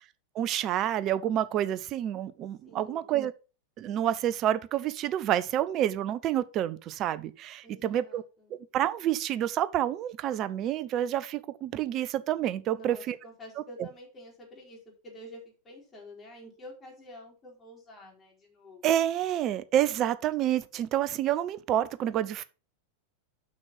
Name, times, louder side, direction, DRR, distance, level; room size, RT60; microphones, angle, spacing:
voice 1, 0.3-3.3 3.8-8.2 8.5-13.2 13.8-13.9 18.8-22.4, right 11 dB, 35° right, 0.7 m, -28 dB
voice 2, 2.6-3.1 7.6-8.5 12.7-18.9, left 1 dB, 25° left, 4.4 m, -49 dB
6.3 x 6.2 x 5.6 m
figure-of-eight pair, 90°, 0 cm